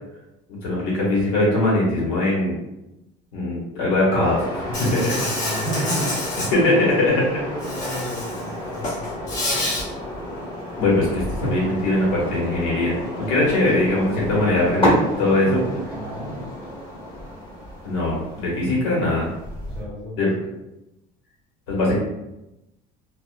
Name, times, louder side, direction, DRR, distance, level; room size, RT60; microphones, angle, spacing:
voice 1, 0.6-2.6 3.3-5.2 6.5-7.2 10.8-13.0 13.3-15.6 17.8-19.3 20.2-20.3 21.7-22.0, left 2 dB, 85° left, -5 dB, 1.2 m, -21 dB
sound 1, 4.2-19.8, equal, 30° left, 1.5 m, -30 dB
Insect, 4.7-6.5 7.6-8.4 8.7-9.8, left 1 dB, 45° left, 0.9 m, -28 dB
voice 2, 5.3-9.1 9.5-9.7 15.1-16.5 19.7-20.3, right 1 dB, 5° right, -8 dB, 1.1 m, -32 dB
2.4 x 2.4 x 2.2 m, 0.92 s
cardioid pair, 135°, 17 cm